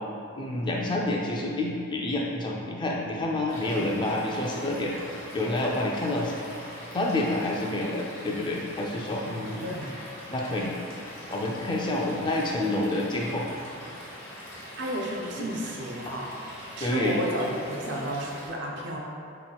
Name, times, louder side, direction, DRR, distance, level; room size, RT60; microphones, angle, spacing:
voice 1, 0.4-4.9 5.3-6.3 6.9-9.7 10.3-10.7 11.3-13.4 15.4-15.5 16.8-17.2, left 1 dB, 20° left, -2 dB, 0.3 m, -28 dB
Stream / Liquid, 3.5-18.5, equal, 45° left, 1.3 m, -43 dB
voice 2, 9.6-9.9 14.8-16.4 16.8-19.0, right 1 dB, 55° right, -1 dB, 0.4 m, -32 dB
5.1 x 2.9 x 2.2 m, 2.6 s
head